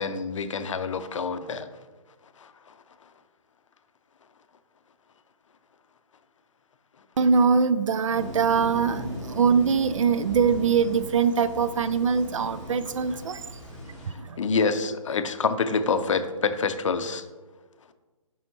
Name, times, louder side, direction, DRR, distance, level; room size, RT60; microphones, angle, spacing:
voice 1, 0.0-1.7 2.4-2.5 14.4-17.2, left 5 dB, 65° left, 10 dB, 0.6 m, -26 dB
voice 2, 7.2-13.4, right 5 dB, 65° right, 14 dB, 0.4 m, -22 dB
sound 1, 8.1-14.1, equal, 5° left, 1.6 m, -39 dB
7.5 x 5.5 x 2.9 m, 1.3 s
hypercardioid pair, 160°, 18 cm